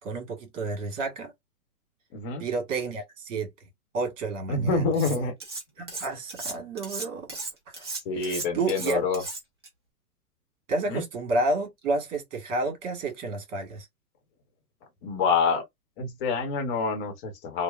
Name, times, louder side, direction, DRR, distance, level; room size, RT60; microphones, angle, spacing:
voice 1, 0.0-1.3 2.4-3.5 3.9-4.8 5.1-5.3 5.8-7.3 7.7-7.8 8.2-9.0 10.7-13.9, right 2 dB, 50° right, 1.6 m, -30 dB
voice 2, 2.1-2.4 4.5-5.3 8.0-9.2 10.9-11.0 15.0-15.6 16.0-17.6, left 4 dB, 35° left, 0.9 m, -27 dB
Cutlery silverware, 4.9-5.6 5.9-9.7, right 3 dB, 20° right, 0.3 m, -36 dB
2.9 x 2.1 x 2.3 m
hypercardioid pair, 125°, 47 cm